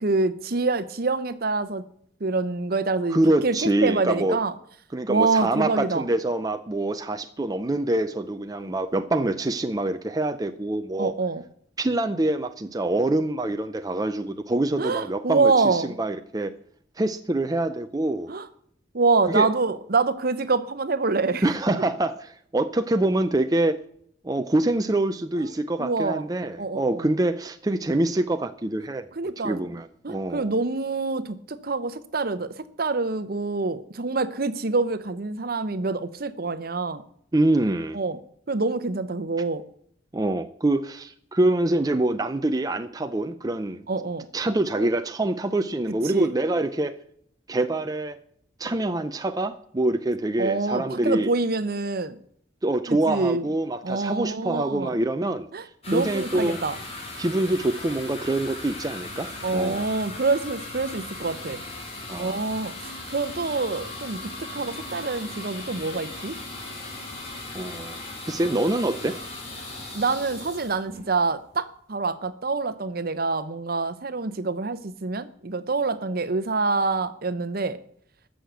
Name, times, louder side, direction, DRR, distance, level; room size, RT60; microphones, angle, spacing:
voice 1, 0.0-1.8 2.2-4.5 5.1-6.0 11.0-11.4 14.8-15.9 18.3-18.5 18.9-21.4 25.3-25.4 25.8-26.2 26.6-27.1 29.2-29.6 30.0-37.0 37.9-38.2 38.5-39.6 43.9-44.3 44.7-44.9 46.1-46.3 50.4-52.2 52.9-53.4 53.8-55.0 55.5-56.8 59.4-61.6 62.2-66.3 69.9-77.8, right 3 dB, 55° right, 0.9 m, -26 dB
voice 2, 3.1-4.4 4.9-11.1 11.8-16.5 17.0-18.3 19.3-19.5 21.4-23.8 24.2-29.1 29.4-30.5 37.3-38.0 40.1-43.9 44.3-47.0 47.5-48.2 48.6-51.3 52.6-55.5 55.9-56.6 57.2-59.9 62.1-62.4 67.5-68.0 68.3-69.2, right 2 dB, 20° right, 0.5 m, -25 dB
sound 1, 55.8-71.5, left 2 dB, 35° left, 3.5 m, -38 dB
14.0 x 6.5 x 8.2 m
head